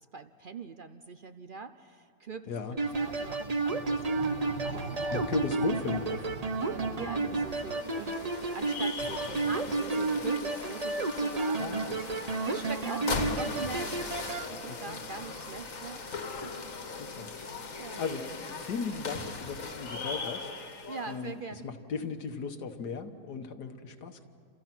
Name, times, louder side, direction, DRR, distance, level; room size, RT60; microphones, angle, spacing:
voice 1, 0.1-4.0 4.3-5.1 6.6-16.6 17.4-18.0 20.9-21.7, right 4 dB, 60° right, 10 dB, 0.5 m, -43 dB
sound 1, 2.8-14.5, right 3 dB, 30° right, 0.8 m, -32 dB
sound 2, 2.9-8.8, right 4 dB, 80° right, 2.1 m, -42 dB
voice 2, 5.1-6.3 11.6-12.0 14.7-15.0 17.0-17.3 17.6-18.2 18.6-20.5 21.1-21.4 21.6-24.2, left 5 dB, 70° left, 7 dB, 1.8 m, -36 dB
sound 3, 7.2-21.3, left 4 dB, 55° left, 1.9 m, -39 dB
29.0 x 27.5 x 6.0 m, 2.3 s
omnidirectional pair, 1.8 m